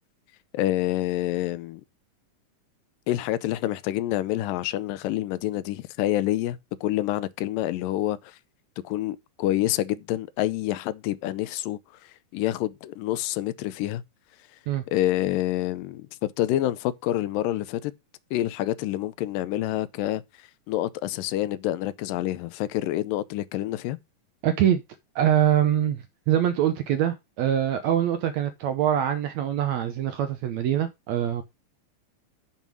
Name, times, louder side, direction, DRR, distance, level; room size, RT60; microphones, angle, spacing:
voice 1, 0.5-1.8 3.1-8.4 8.8-11.8 12.3-14.0 14.9-17.9 18.3-20.2 20.7-24.0, left 14 dB, 85° left, 2.3 m, -27 dB
voice 2, 24.4-24.8 25.1-31.4, right 10 dB, 75° right, 1.7 m, -24 dB
7.3 x 5.5 x 6.0 m
omnidirectional pair, 3.9 m